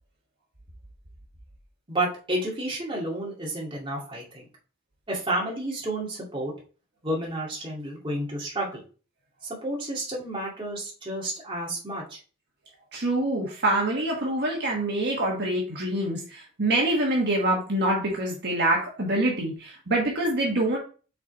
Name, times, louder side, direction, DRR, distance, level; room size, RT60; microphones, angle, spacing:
voice 1, 1.9-4.5 5.1-6.5 7.0-8.8 9.6-12.2, right 1 dB, 25° right, -3 dB, 2.2 m, -31 dB
voice 2, 12.9-20.8, right 1 dB, 50° right, -2 dB, 1.4 m, -25 dB
6.0 x 4.2 x 4.2 m, 0.38 s
head